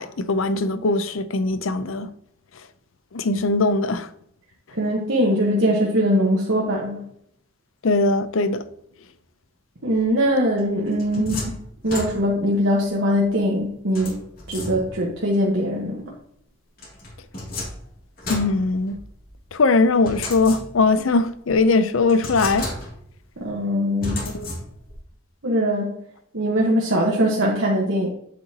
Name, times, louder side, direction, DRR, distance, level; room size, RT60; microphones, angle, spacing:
voice 1, 0.0-2.1 3.1-4.1 7.8-8.6 11.2-11.3 18.3-19.0 19.5-22.7 24.3-24.5, left 3 dB, 85° left, 0.6 m, -20 dB
voice 2, 4.7-7.0 9.8-11.5 11.8-14.2 14.5-16.0 23.4-24.3 25.4-26.0 26.3-28.1, equal, 70° right, 1.3 m, -21 dB
sound 1, 10.6-12.6 14.0-15.2 16.8-19.3 20.0-21.0 21.5-21.6 22.1-23.2 24.0-25.0, left 1 dB, 45° left, 2.7 m, -33 dB
8.2 x 7.7 x 2.9 m
head